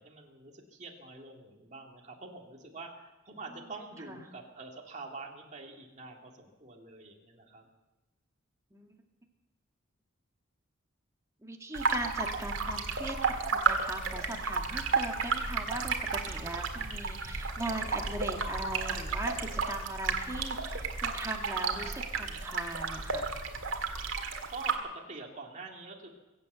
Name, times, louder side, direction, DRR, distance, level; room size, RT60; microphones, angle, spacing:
voice 1, 0.0-7.7 24.5-26.1, right 3 dB, 40° right, 1 dB, 2.2 m, -46 dB
voice 2, 11.4-23.3, right 1 dB, 15° right, 1 dB, 2.0 m, -39 dB
sound 1, 11.7-24.8, right 4 dB, 85° right, 1.8 m, -32 dB
22.5 x 8.0 x 8.0 m, 1.1 s
head